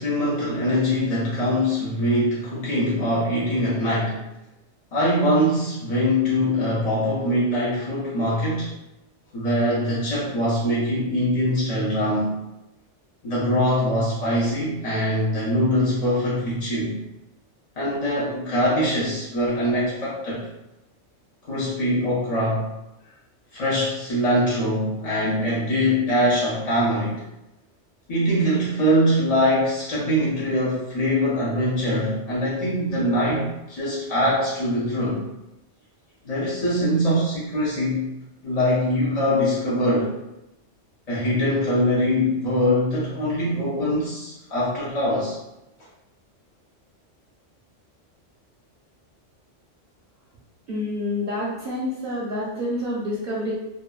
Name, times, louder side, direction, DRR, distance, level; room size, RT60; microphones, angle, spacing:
voice 1, 0.0-4.2 4.9-8.7 9.3-12.4 13.2-17.0 17.8-20.5 21.5-22.7 23.5-27.2 28.1-35.2 36.2-38.1 38.4-40.1 41.1-45.4, equal, 50° left, -7 dB, 0.5 m, -23 dB
voice 2, 50.7-53.5, left 1 dB, 60° right, -6 dB, 0.6 m, -28 dB
2.7 x 2.2 x 2.3 m, 0.93 s
omnidirectional pair, 1.2 m